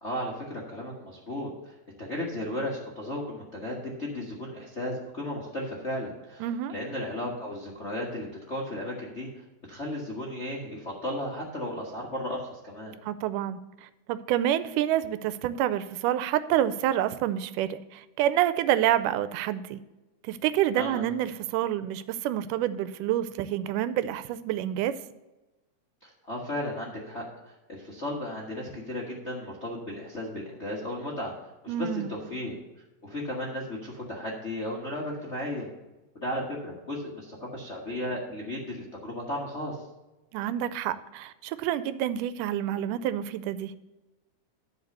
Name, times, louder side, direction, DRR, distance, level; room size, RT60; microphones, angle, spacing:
voice 1, 0.0-9.3 9.7-13.0 20.7-21.0 26.0-31.3 31.6-32.5 33.0-35.7 36.2-39.8, left 1 dB, 45° left, -3 dB, 0.9 m, -35 dB
voice 2, 6.4-6.7 13.0-19.8 20.2-25.0 31.7-32.1 40.3-43.7, right 11 dB, 90° right, 14 dB, 2.1 m, -28 dB
10.5 x 4.7 x 6.5 m, 1.1 s
omnidirectional pair, 3.6 m